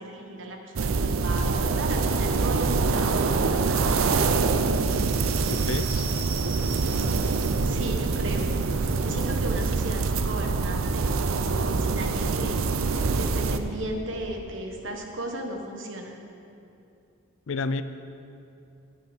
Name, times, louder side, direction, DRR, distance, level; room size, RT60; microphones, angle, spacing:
voice 1, 0.0-4.3 7.6-8.5 9.0-12.6 13.1-16.2, right 1 dB, 65° right, 2 dB, 1.2 m, -36 dB
sound 1, 0.8-13.6, right 4 dB, 80° right, 0.5 m, -25 dB
sound 2, 4.7-11.8, right 5 dB, 45° right, 1.1 m, -43 dB
voice 2, 5.5-6.1 17.5-17.8, left 3 dB, 70° left, 11 dB, 0.5 m, -30 dB
9.9 x 9.2 x 5.2 m, 2.6 s
head